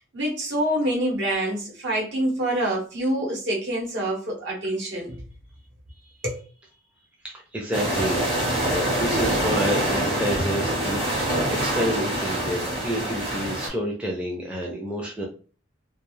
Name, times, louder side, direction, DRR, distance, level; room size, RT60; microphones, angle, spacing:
voice 1, 0.1-5.2 6.2-6.4, right 1 dB, 60° right, 1.0 m, -26 dB
voice 2, 7.2-8.3 8.7-15.2, equal, 5° right, 0.4 m, -29 dB
sound 1, 7.7-13.7, right 1 dB, 25° right, 0.9 m, -25 dB
2.3 x 2.3 x 3.1 m
head